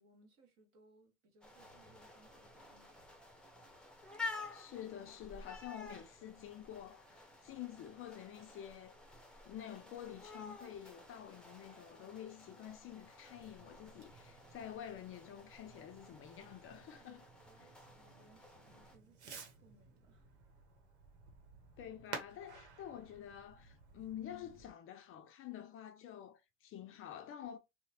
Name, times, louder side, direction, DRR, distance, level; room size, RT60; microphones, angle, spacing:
voice 1, 0.0-3.0 16.9-20.3, right 3 dB, 55° right, 1.5 m, -67 dB
sound 1, 1.4-19.0, left 3 dB, 5° left, 0.7 m, -52 dB
voice 2, 4.5-9.0 9.4-17.2 21.8-27.6, left 10 dB, 40° left, 0.4 m, -49 dB
Fireworks, 13.3-24.7, right 4 dB, 90° right, 0.9 m, -54 dB
2.8 x 2.0 x 2.8 m
hypercardioid pair, 85°, 33 cm